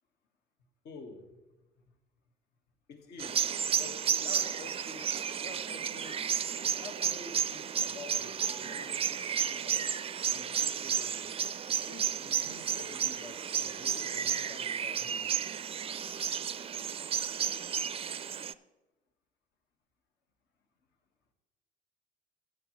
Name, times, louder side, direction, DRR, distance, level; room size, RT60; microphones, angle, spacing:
voice 1, 0.8-1.3 2.9-5.1 5.4-6.2 6.8-9.8 10.3-11.2 11.8-15.2, left 3 dB, 65° left, 4 dB, 1.6 m, -49 dB
sound 1, 3.2-18.5, right 8 dB, 35° right, 0.4 m, -32 dB
14.5 x 9.1 x 3.2 m, 1.1 s
supercardioid pair, 65°, 18 cm